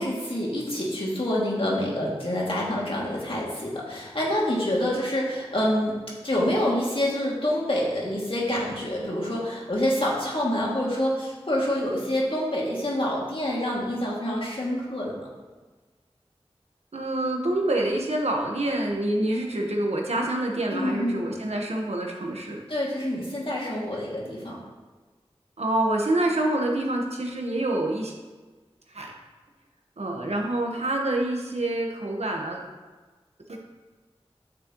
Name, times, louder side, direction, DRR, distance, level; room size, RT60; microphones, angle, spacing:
voice 1, 0.0-15.3 20.7-21.2 22.7-24.6, left 1 dB, 55° left, -5 dB, 2.4 m, -27 dB
voice 2, 16.9-22.6 25.6-28.1 28.9-29.1 30.0-32.7 33.5-33.6, right 1 dB, 85° right, 0 dB, 1.3 m, -26 dB
9.7 x 6.6 x 3.1 m, 1.3 s
wide cardioid pair, 40°, 11 cm